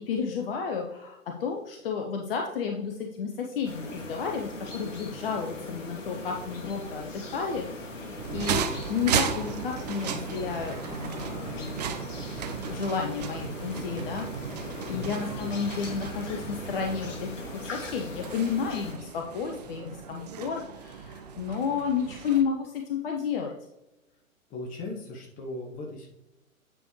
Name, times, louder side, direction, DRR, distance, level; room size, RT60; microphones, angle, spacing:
voice 1, 0.0-11.9 12.7-23.5, left 6 dB, 40° left, 2 dB, 0.8 m, -32 dB
sound 1, 3.6-18.9, left 1 dB, 60° left, 2.4 m, -40 dB
sound 2, 8.2-22.4, right 7 dB, 30° right, 0.5 m, -35 dB
voice 2, 14.8-15.5 24.5-26.1, left 2 dB, 20° left, 0 dB, 1.0 m, -38 dB
8.9 x 5.0 x 3.1 m, 0.92 s
figure-of-eight pair, 120°, 42 cm